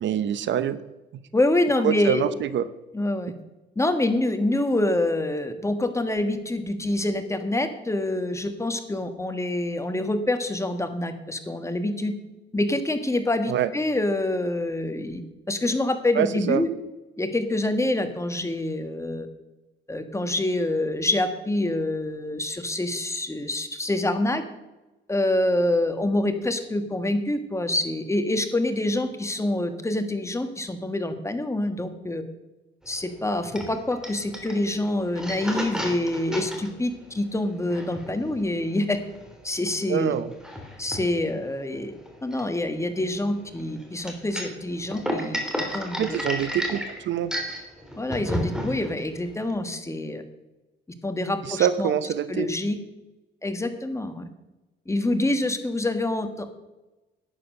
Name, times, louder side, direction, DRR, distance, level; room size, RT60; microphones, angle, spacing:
voice 1, 0.0-0.8 1.8-2.7 13.5-13.7 16.1-16.6 39.9-40.3 46.0-47.3 51.5-52.5, right 10 dB, 65° right, 14 dB, 0.7 m, -25 dB
voice 2, 1.3-2.2 2.9-3.3 3.7-12.1 12.5-15.2 15.5-16.7 17.2-19.3 19.9-24.4 25.1-32.2 32.9-39.0 39.4-40.2 40.8-41.9 42.2-45.4 45.7-46.3 48.0-50.2 51.0-51.9 52.3-52.8 53.4-54.2 54.9-56.5, left 1 dB, 15° left, 8 dB, 1.6 m, -26 dB
sound 1, 32.8-49.5, equal, 5° right, 3.0 m, -33 dB
11.0 x 8.8 x 6.5 m, 1.1 s
cardioid pair, 90°, 20 cm